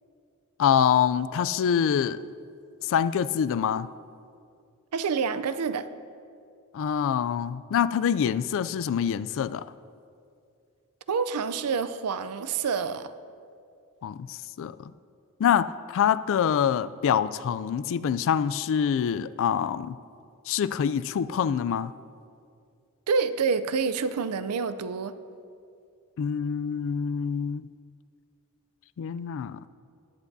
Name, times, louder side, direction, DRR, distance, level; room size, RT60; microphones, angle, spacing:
voice 1, 0.6-2.2 2.8-3.9 6.7-9.7 14.0-14.9 15.4-20.0 20.5-21.9 26.2-27.7 29.0-29.6, left 8 dB, 60° left, 15 dB, 0.3 m, -25 dB
voice 2, 4.9-5.9 11.1-13.1 23.1-25.1, right 5 dB, 90° right, 13 dB, 0.5 m, -27 dB
19.5 x 8.3 x 2.7 m, 2.4 s
head